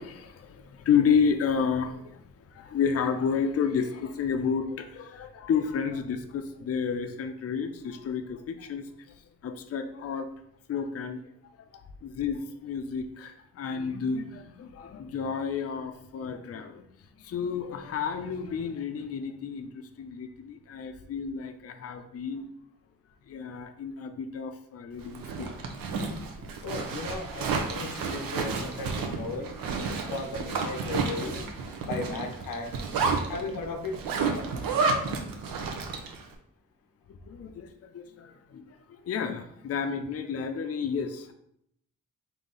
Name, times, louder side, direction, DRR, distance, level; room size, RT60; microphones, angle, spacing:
voice 1, 0.0-8.9 9.2-10.3 10.7-11.2 11.6-16.9 17.2-22.5 23.3-25.6 26.4-26.5 29.8-30.2 34.3-34.4 37.1-41.3, left 6 dB, 45° left, 6 dB, 0.5 m, -31 dB
Zipper (clothing), 25.0-36.2, right 4 dB, 85° right, 0.7 m, -31 dB
voice 2, 26.6-29.5 29.9-31.4 31.8-32.7 33.3-34.0, left 3 dB, 90° left, 4 dB, 0.7 m, -36 dB
3.9 x 2.8 x 3.7 m, 0.73 s
cardioid pair, 70°, 33 cm